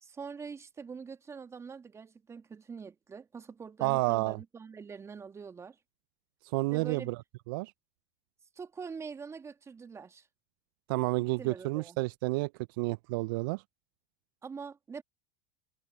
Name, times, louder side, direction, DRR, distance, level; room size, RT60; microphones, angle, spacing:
voice 1, 0.0-5.8 6.7-7.1 8.5-10.3 11.4-12.0 14.4-15.0, right 5 dB, 20° right, 1.5 m, -44 dB
voice 2, 3.8-4.4 6.5-7.2 7.5-7.7 10.9-12.5 12.8-13.6, right 24 dB, 65° right, 0.6 m, -30 dB
hypercardioid pair, 85°, 12 cm